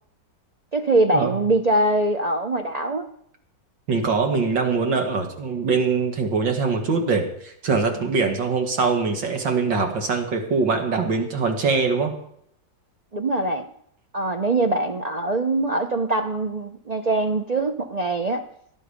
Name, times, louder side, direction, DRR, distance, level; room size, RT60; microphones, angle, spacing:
voice 1, 0.7-3.1 13.1-13.7 14.1-18.4, right 2 dB, 70° right, 6 dB, 0.3 m, -23 dB
voice 2, 3.9-12.1, right 4 dB, 90° right, 3 dB, 2.7 m, -23 dB
18.0 x 11.5 x 5.1 m, 0.71 s
omnidirectional pair, 2.0 m